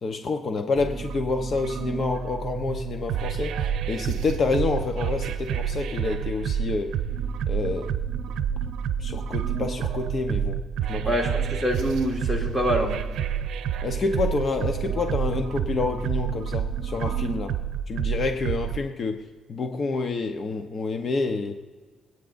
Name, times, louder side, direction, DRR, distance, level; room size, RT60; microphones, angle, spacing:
voice 1, 0.0-3.5 3.9-6.9 7.5-7.9 9.0-10.6 10.9-11.1 13.8-17.5 17.9-19.2 19.5-21.5, left 4 dB, 50° left, 5 dB, 0.9 m, -28 dB
sound 1, 0.8-18.8, right 8 dB, 75° right, 0.7 m, -29 dB
voice 2, 11.0-13.0, equal, 10° left, 1 dB, 2.1 m, -25 dB
26.5 x 9.2 x 2.6 m, 1.5 s
cardioid pair, 90°, 0 cm